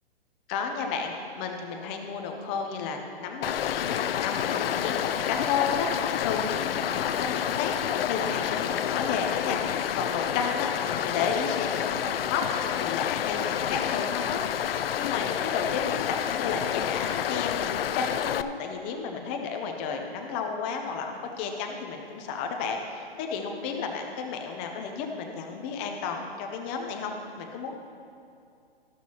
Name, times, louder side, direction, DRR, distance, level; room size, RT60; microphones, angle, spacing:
voice 1, 0.5-7.8 8.0-12.4 12.7-27.8, left 5 dB, 10° left, 3 dB, 0.4 m, -32 dB
Stream, 3.4-18.4, left 10 dB, 65° left, 0.5 m, -29 dB
13.5 x 12.5 x 2.8 m, 2.4 s
hypercardioid pair, 145°, 32 cm